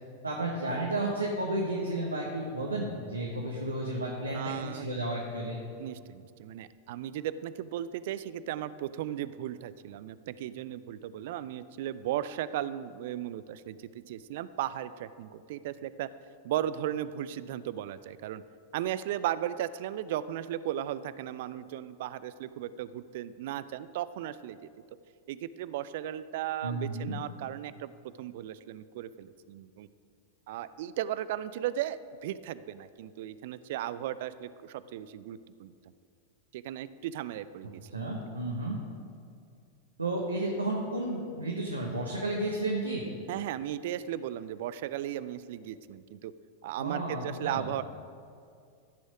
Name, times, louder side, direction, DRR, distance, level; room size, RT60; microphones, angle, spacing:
voice 1, 0.2-5.6 26.6-27.2 37.9-38.8 40.0-43.1 46.8-47.6, right 1 dB, 80° right, -2 dB, 1.2 m, -32 dB
voice 2, 4.3-4.9 5.8-16.1 16.4-18.4 18.7-24.6 25.3-27.9 28.2-29.9 30.5-35.7 36.5-38.1 43.3-46.3 46.6-47.8, right 12 dB, 50° right, 16 dB, 0.4 m, -36 dB
14.5 x 6.2 x 5.0 m, 2.3 s
figure-of-eight pair, 90°, 0 cm